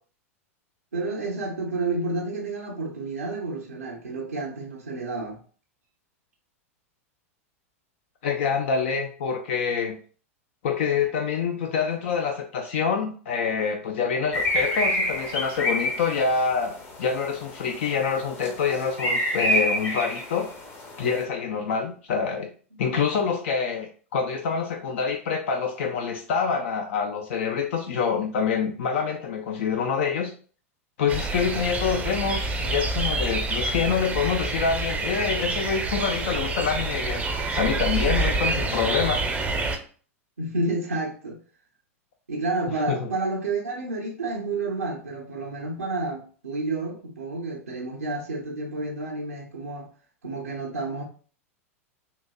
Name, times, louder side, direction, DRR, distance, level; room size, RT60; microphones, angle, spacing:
voice 1, 0.9-5.4 22.7-22.8 40.4-41.4 42.3-49.9 50.2-51.0, right 3 dB, 80° right, 0.6 m, -30 dB
voice 2, 8.2-10.0 10.6-20.5 21.0-22.5 22.8-30.3 31.0-37.2 37.5-39.2 42.9-43.1, left 6 dB, 55° left, 0.4 m, -26 dB
sound 1, 14.3-21.2, equal, 30° left, 0.7 m, -28 dB
sound 2, 31.1-39.8, right 3 dB, 15° right, 0.5 m, -27 dB
3.9 x 2.6 x 2.2 m
figure-of-eight pair, 90°, 8 cm